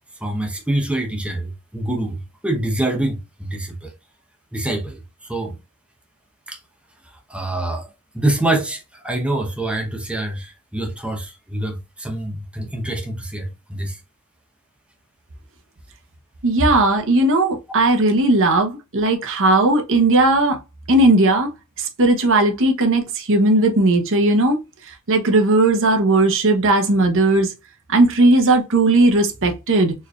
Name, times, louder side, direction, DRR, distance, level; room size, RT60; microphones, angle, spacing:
voice 1, 0.2-3.9 4.5-5.6 6.5-6.6 7.3-14.0, right 1 dB, 5° right, 0.8 m, -25 dB
voice 2, 16.4-20.6 20.9-21.5 21.8-24.6 25.1-27.5 27.9-29.9, right 2 dB, 60° right, 0.9 m, -16 dB
4.5 x 3.2 x 2.4 m
head